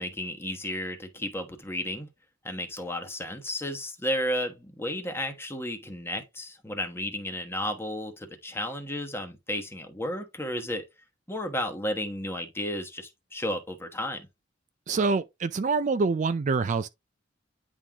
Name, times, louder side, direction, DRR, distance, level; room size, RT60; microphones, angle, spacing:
voice 1, 0.0-2.1 2.4-10.9 11.3-14.3, left 1 dB, 15° left, 1.1 m, -33 dB
voice 2, 14.9-16.9, right 4 dB, 40° right, 0.4 m, -26 dB
9.7 x 3.8 x 2.9 m
head